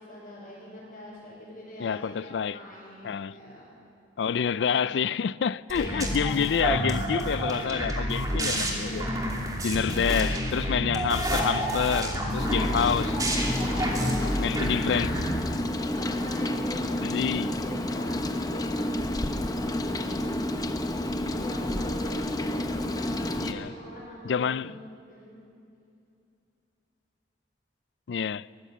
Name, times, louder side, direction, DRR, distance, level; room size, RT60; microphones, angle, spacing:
voice 1, 0.0-3.7 4.2-4.9 5.7-6.2 7.2-7.6 8.8-9.2 9.9-10.1 12.4-13.0 13.5-14.1 15.8-18.8 19.3-20.6 21.3-24.7 25.1-25.4, left 1 dB, 50° left, 4.8 m, -43 dB
voice 2, 1.8-2.6 3.0-3.4 4.2-9.1 9.6-13.1 14.4-15.1 17.0-17.5 23.4-23.7 24.2-24.7 28.1-28.5, left 7 dB, 85° left, 0.4 m, -28 dB
sound 1, 5.7-15.3, equal, 20° right, 2.8 m, -29 dB
Rain, 12.4-23.5, left 1 dB, 20° left, 1.0 m, -30 dB
23.0 x 15.0 x 8.4 m
head